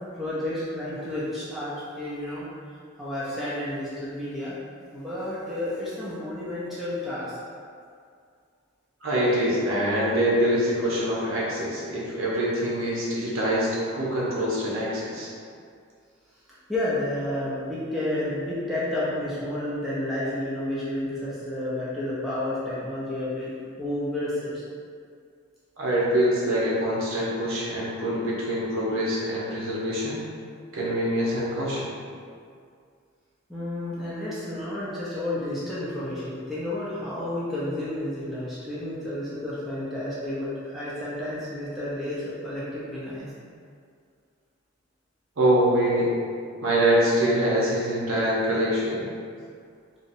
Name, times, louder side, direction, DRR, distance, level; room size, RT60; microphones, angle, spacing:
voice 1, 0.1-2.5 3.0-4.5 4.9-7.3 16.7-23.5 23.8-24.6 33.5-43.3, left 1 dB, ahead, -10 dB, 0.4 m, -31 dB
voice 2, 9.0-15.3 25.8-30.2 30.7-31.9 45.4-46.1 46.6-49.1, equal, 80° right, -6 dB, 0.7 m, -24 dB
2.7 x 2.0 x 2.5 m, 2.2 s
head